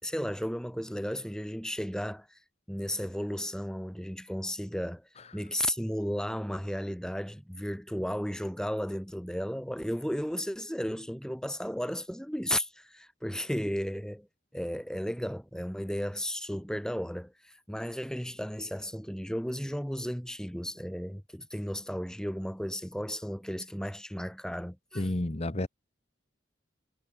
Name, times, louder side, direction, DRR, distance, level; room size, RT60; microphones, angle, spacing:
voice 1, 0.0-2.4 2.7-14.3 14.5-25.1, equal, 5° left, 5.7 m, -34 dB
voice 2, 25.0-25.7, left 1 dB, 35° left, 1.1 m, -30 dB
head